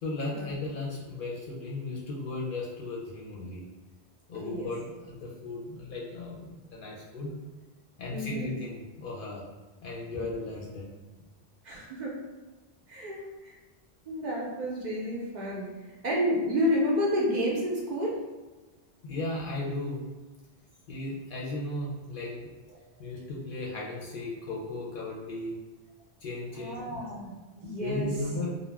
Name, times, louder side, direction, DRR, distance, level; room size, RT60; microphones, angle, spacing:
voice 1, 0.0-3.6 4.3-7.3 8.0-9.4 9.8-11.0 19.0-20.0 20.9-22.5 23.0-25.6 26.2-27.0 27.8-28.5, left 2 dB, 60° left, -4 dB, 0.6 m, -36 dB
voice 2, 4.3-4.7 8.1-8.5 10.1-10.2 11.6-12.1 12.9-13.2 14.1-15.7 16.0-18.2 26.6-28.1, equal, 50° right, -4 dB, 0.6 m, -30 dB
2.3 x 2.1 x 3.2 m, 1.2 s
omnidirectional pair, 1.1 m